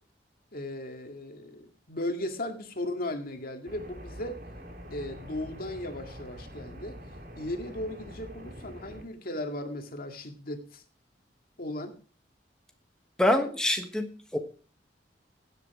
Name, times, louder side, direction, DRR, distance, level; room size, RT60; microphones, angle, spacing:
voice 1, 0.5-4.4 4.9-7.0 7.4-10.8 11.6-11.9, left 1 dB, 55° left, 5 dB, 2.1 m, -36 dB
sound 1, 3.6-9.0, equal, 60° right, 3.0 m, -45 dB
voice 2, 13.2-14.1 14.3-14.4, left 1 dB, 5° left, 4 dB, 1.3 m, -25 dB
16.5 x 8.2 x 4.9 m, 0.41 s
head